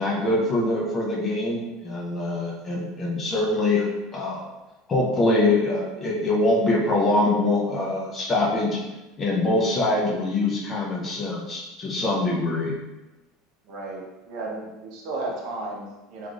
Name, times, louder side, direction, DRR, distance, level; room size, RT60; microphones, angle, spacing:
voice 1, 0.0-3.9 4.1-4.5 4.9-8.8 9.2-12.7, left 2 dB, 20° left, -3 dB, 0.5 m, -24 dB
voice 2, 13.6-16.3, right 2 dB, 50° right, -2 dB, 0.7 m, -34 dB
3.3 x 2.5 x 2.3 m, 1.1 s
cardioid pair, 165°, 0 cm